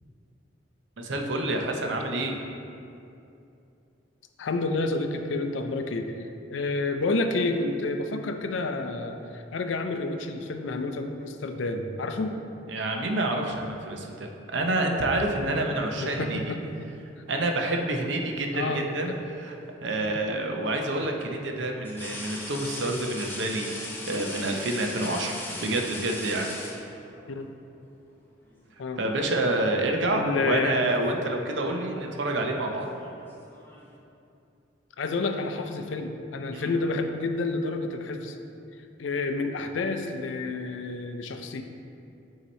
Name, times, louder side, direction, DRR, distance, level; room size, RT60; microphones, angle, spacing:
voice 1, 1.0-2.3 12.7-16.5 17.3-19.6 19.8-26.5 29.0-32.9 36.5-36.7, right 2 dB, 70° right, 2 dB, 0.6 m, -28 dB
voice 2, 4.4-12.4 16.0-16.9 18.5-19.0 27.3-27.5 28.8-29.0 30.1-31.0 35.0-38.4 39.0-41.6, left 3 dB, 80° left, 6 dB, 0.4 m, -29 dB
sound 1, 17.5-18.4 20.2-20.3 21.8-27.3 28.5-28.7 29.1-29.9 30.1-30.5 31.4-34.0, left 1 dB, 10° left, 0.6 m, -40 dB
8.1 x 2.9 x 4.2 m, 2.7 s
head